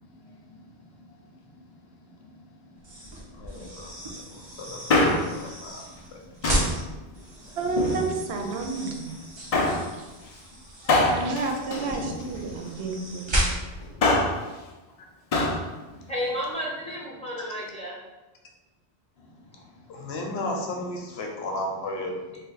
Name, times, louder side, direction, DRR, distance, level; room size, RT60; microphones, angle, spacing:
voice 1, 0.0-7.5 9.3-9.8 10.8-10.9 11.9-12.0 15.9-16.1 19.2-22.1, left 1 dB, 75° left, 1 dB, 0.9 m, -38 dB
sound 1, 2.8-13.9, right 1 dB, 35° right, 0.5 m, -34 dB
Male speech man speaking, 4.7-5.5 6.4-6.8 7.6-8.4 9.5-9.9 10.9-12.5 13.8-14.4 15.3-15.6 15.9-16.0, left 2 dB, 55° left, 0.4 m, -24 dB
voice 2, 7.6-9.2 9.9-10.1 11.1-13.4, right 3 dB, 80° right, 3 dB, 0.8 m, -30 dB
voice 3, 16.1-18.0 19.5-19.6, equal, 5° left, -6 dB, 0.8 m, -32 dB
3.3 x 2.2 x 3.9 m, 1.1 s
omnidirectional pair, 1.1 m